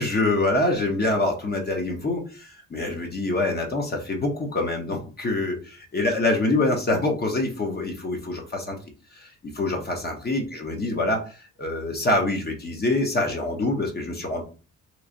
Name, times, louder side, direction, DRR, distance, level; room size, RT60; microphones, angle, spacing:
voice 1, 0.0-8.8 9.1-14.4, left 2 dB, 30° left, 1 dB, 0.9 m, -25 dB
3.1 x 2.4 x 3.8 m, 0.35 s
cardioid pair, 90°, 30 cm